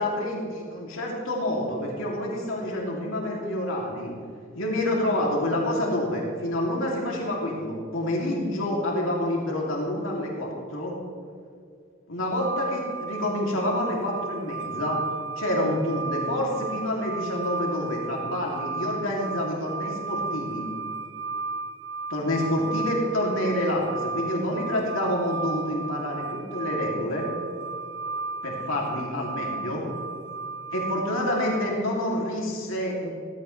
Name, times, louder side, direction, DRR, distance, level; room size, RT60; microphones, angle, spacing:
voice 1, 0.0-4.1 4.5-10.9 12.1-15.0 15.4-20.7 22.1-27.3 28.4-29.8 30.7-33.1, left 1 dB, 80° left, -3 dB, 2.7 m, -28 dB
sound 1, 12.4-31.8, right 4 dB, 65° right, 0.7 m, -34 dB
16.5 x 15.0 x 3.3 m, 2.3 s
head